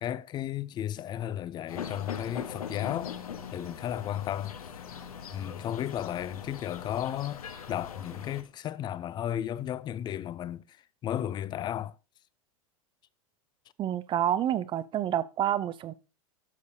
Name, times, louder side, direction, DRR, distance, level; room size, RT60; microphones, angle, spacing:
voice 1, 0.0-3.2 3.5-4.6 5.3-7.4 7.7-10.8 11.0-12.0, left 11 dB, 25° left, 0.4 m, -34 dB
sound 1, 1.7-8.4, left 7 dB, 80° left, 1.2 m, -41 dB
voice 2, 13.8-15.9, right 10 dB, 25° right, 0.5 m, -28 dB
11.5 x 6.7 x 2.8 m
hypercardioid pair, 105°, 18 cm